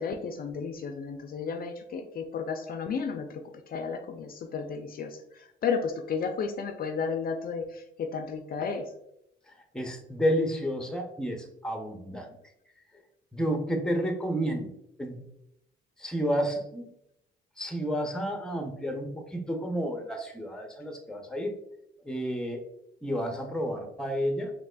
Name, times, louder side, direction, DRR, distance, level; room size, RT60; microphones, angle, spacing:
voice 1, 0.0-8.9, left 5 dB, 50° left, 6 dB, 0.4 m, -33 dB
voice 2, 9.7-12.4 13.3-14.7 15.0-15.2 16.0-16.9 17.6-21.5 22.0-22.6 23.0-24.5, equal, 5° left, 4 dB, 0.6 m, -31 dB
4.0 x 2.9 x 2.2 m, 0.80 s
cardioid pair, 90°, 20 cm